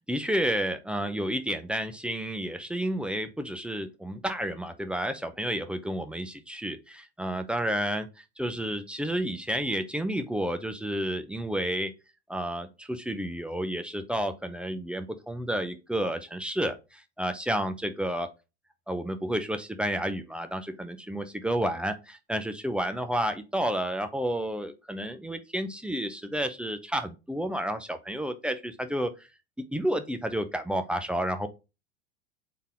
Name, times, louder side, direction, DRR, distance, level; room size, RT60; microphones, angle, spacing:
voice 1, 0.0-11.9 12.3-18.3 18.9-29.1 29.6-31.5, equal, 5° right, 8 dB, 0.5 m, -31 dB
4.1 x 3.7 x 3.5 m, 0.27 s
hypercardioid pair, 90°, 35 cm